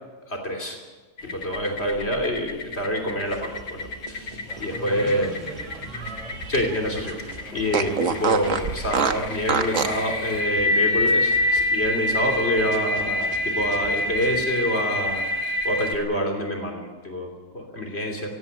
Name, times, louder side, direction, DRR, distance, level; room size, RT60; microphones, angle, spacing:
voice 1, 0.3-0.8 1.2-5.3 6.5-18.3, equal, 40° left, 3 dB, 3.4 m, -27 dB
sound 1, 1.2-16.0, left 2 dB, 70° left, 2.0 m, -27 dB
sound 2, 3.2-14.4, right 2 dB, 30° right, 1.7 m, -44 dB
voice 2, 4.3-6.4 7.4-7.8, right 1 dB, ahead, 2 dB, 4.3 m, -40 dB
Fart, 4.7-6.8 7.1-7.2 7.7-10.1, right 6 dB, 55° right, 1.4 m, -26 dB
18.0 x 16.0 x 9.7 m, 1.2 s
omnidirectional pair, 1.7 m